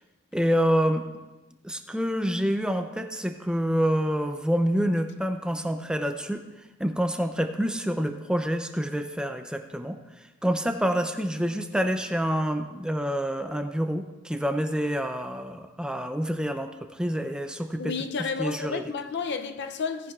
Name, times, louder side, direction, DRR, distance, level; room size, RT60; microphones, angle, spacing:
voice 1, 0.3-1.0 1.6-6.4 6.8-10.0 10.4-17.9 18.4-18.8, equal, 5° right, 0.5 m, -27 dB
voice 2, 17.8-20.1, left 5 dB, 55° left, 0.5 m, -31 dB
17.0 x 10.0 x 2.4 m
head